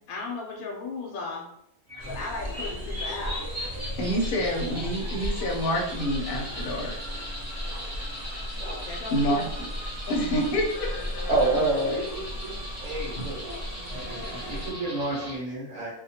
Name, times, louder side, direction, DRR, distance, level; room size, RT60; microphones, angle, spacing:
voice 1, 0.0-1.5 2.1-3.4 8.8-9.5 10.5-11.8, left 3 dB, 80° left, -1 dB, 1.0 m, -36 dB
sound 1, 1.9-15.4, equal, 20° right, 0.5 m, -38 dB
sound 2, 2.0-14.7, left 1 dB, 55° right, 1.2 m, -36 dB
voice 2, 4.0-6.9 9.1-9.4 10.1-10.9, equal, 55° left, -1 dB, 0.7 m, -27 dB
voice 3, 11.3-12.5 12.8-13.4 13.9-15.9, right 2 dB, 75° right, -7 dB, 1.3 m, -28 dB
2.7 x 2.2 x 2.7 m, 0.75 s
omnidirectional pair, 1.5 m